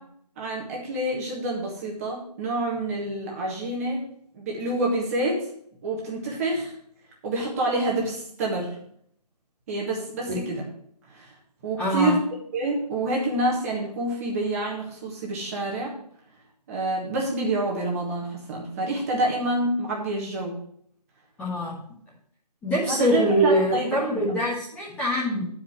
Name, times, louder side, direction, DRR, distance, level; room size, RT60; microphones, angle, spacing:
voice 1, 0.4-4.0 4.3-5.4 5.8-6.7 7.2-8.7 9.7-10.6 11.1-11.3 11.6-12.2 12.5-15.9 16.7-20.6 22.9-24.2, right 2 dB, 20° right, -3 dB, 1.6 m, -27 dB
voice 2, 11.8-12.1 21.4-21.8 22.6-25.5, equal, 5° left, -8 dB, 1.4 m, -24 dB
8.9 x 5.0 x 6.2 m, 0.66 s
figure-of-eight pair, 155°, 21 cm